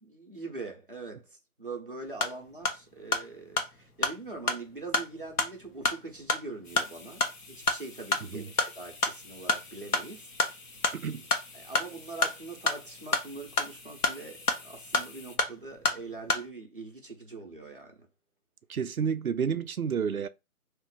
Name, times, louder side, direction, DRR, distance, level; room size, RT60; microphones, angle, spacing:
voice 1, 0.0-10.3 11.5-18.1, right 3 dB, 35° right, 0.8 m, -43 dB
sound 1, 2.0-16.5, left 3 dB, 90° left, 1.0 m, -31 dB
sound 2, 6.6-15.4, left 3 dB, 60° left, 0.9 m, -50 dB
voice 2, 10.9-11.3 18.7-20.3, right 7 dB, 70° right, 0.5 m, -30 dB
2.7 x 2.4 x 3.8 m
figure-of-eight pair, 170°, 44 cm